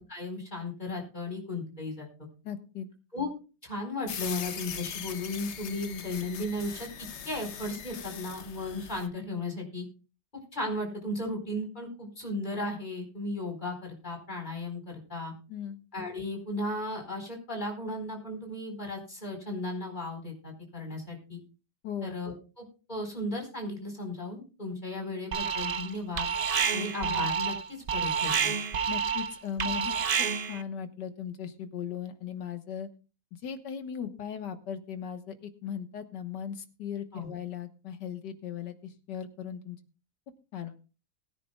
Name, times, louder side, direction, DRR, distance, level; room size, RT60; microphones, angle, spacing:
voice 1, 0.0-2.1 3.1-3.3 3.6-9.8 10.3-15.3 15.9-21.4 22.0-26.3 26.7-28.6 37.1-37.3, left 2 dB, 25° left, 2 dB, 4.5 m, -35 dB
voice 2, 2.4-2.9 15.5-15.8 21.8-22.2 28.9-29.9 30.2-32.9 33.3-39.8 40.5-40.8, left 8 dB, 85° left, 8 dB, 1.9 m, -38 dB
sound 1, 4.1-9.1, left 8 dB, 50° left, 0.9 m, -40 dB
Alarm, 25.3-25.9 26.2-30.6, right 6 dB, 50° right, 0.6 m, -29 dB
21.0 x 9.9 x 2.3 m, 0.33 s
omnidirectional pair, 1.8 m